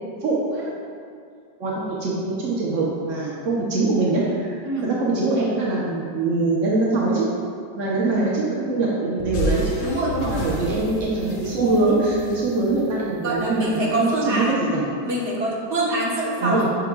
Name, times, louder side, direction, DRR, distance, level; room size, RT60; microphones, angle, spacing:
voice 1, 0.2-0.7 1.6-7.3 7.7-9.8 10.2-14.8 16.4-16.7, right 2 dB, 70° right, -5 dB, 0.7 m, -23 dB
sound 1, 9.2-13.6, equal, 75° left, 1.7 m, -31 dB
voice 2, 9.8-10.4 13.2-16.8, right 1 dB, 40° right, -6 dB, 1.2 m, -24 dB
8.8 x 5.8 x 2.3 m, 2.5 s
omnidirectional pair, 2.4 m